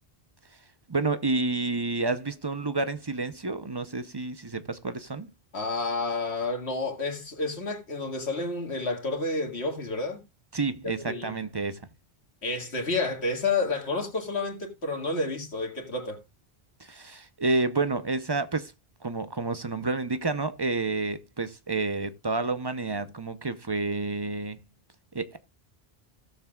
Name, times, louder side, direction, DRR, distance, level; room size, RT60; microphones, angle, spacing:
voice 1, 0.9-5.3 10.5-11.8 16.8-18.7 19.0-24.6 25.1-25.4, right 3 dB, 25° right, 0.7 m, -29 dB
voice 2, 5.5-10.2 10.8-11.4 12.4-16.2, left 3 dB, 85° left, 2.3 m, -30 dB
16.5 x 7.1 x 2.3 m
omnidirectional pair, 1.1 m